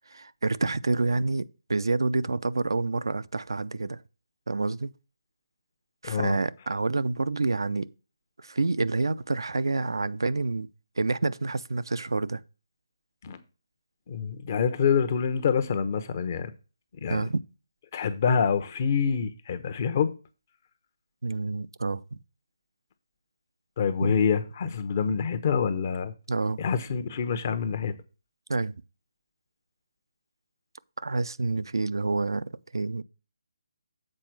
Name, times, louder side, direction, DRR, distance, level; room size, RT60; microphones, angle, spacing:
voice 1, 0.1-4.0 4.5-4.9 6.0-7.9 8.4-10.7 11.0-12.4 17.1-17.4 21.2-22.2 24.0-24.1 26.3-26.6 28.5-28.7 31.0-33.0, right 3 dB, 75° right, 0.5 m, -28 dB
voice 2, 6.0-6.4 13.2-13.4 14.1-16.5 17.0-17.2 17.9-20.1 23.8-26.1 26.6-27.9, left 6 dB, 35° left, 0.9 m, -26 dB
7.6 x 4.4 x 6.1 m
figure-of-eight pair, 155°, 2 cm